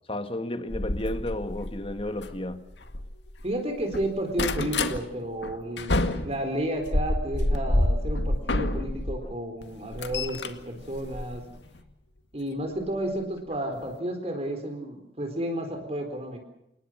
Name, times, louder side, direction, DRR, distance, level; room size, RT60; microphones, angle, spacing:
voice 1, 0.1-2.6 9.2-9.3, left 1 dB, 30° left, 9 dB, 1.8 m, -32 dB
sound 1, 0.7-3.5 3.8-5.0 5.4-9.2 9.6-11.8 12.9-13.1 13.5-13.6 13.8-13.9, left 1 dB, 85° left, 1.9 m, -28 dB
voice 2, 3.4-11.5 12.3-16.4, right 1 dB, 35° right, 5 dB, 4.2 m, -32 dB
28.0 x 20.0 x 6.5 m, 0.81 s
head